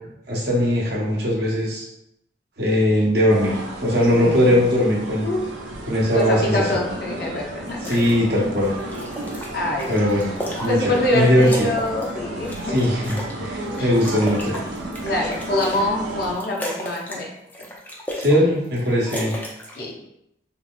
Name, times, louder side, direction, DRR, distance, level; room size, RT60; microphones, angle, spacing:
voice 1, 0.3-1.9 2.6-5.3 5.9-6.8 7.8-8.8 9.9-10.3 10.6-11.7 12.7-14.6 18.2-19.3, equal, 60° right, -4 dB, 0.8 m, -20 dB
sound 1, 3.3-16.3, right 1 dB, 85° right, 0.5 m, -33 dB
voice 2, 4.1-4.6 5.2-5.4 6.1-8.0 9.5-10.0 10.7-12.9 13.8-13.9 15.0-17.3 19.7-20.0, left 1 dB, 55° left, -1 dB, 0.6 m, -25 dB
sound 2, 7.7-8.2 8.6-11.1 11.4-13.4 13.7-15.9 16.2-17.2 17.5-18.4 18.6-19.8, equal, 10° left, 0.4 m, -34 dB
2.9 x 2.8 x 2.2 m, 0.79 s
head